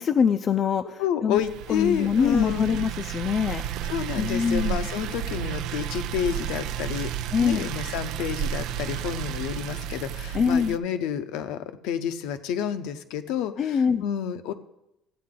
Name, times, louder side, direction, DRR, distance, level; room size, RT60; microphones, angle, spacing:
voice 1, 0.0-1.4 1.7-3.6 4.2-4.9 7.3-7.7 10.3-10.7 13.6-14.0, left 6 dB, 40° left, 5 dB, 0.5 m, -24 dB
voice 2, 1.0-2.7 3.8-7.1 7.4-14.5, left 9 dB, 80° left, 10 dB, 0.7 m, -29 dB
sound 1, 1.4-10.8, right 10 dB, 70° right, 0.4 m, -32 dB
14.0 x 8.5 x 3.8 m, 0.89 s
cardioid pair, 110°, 0 cm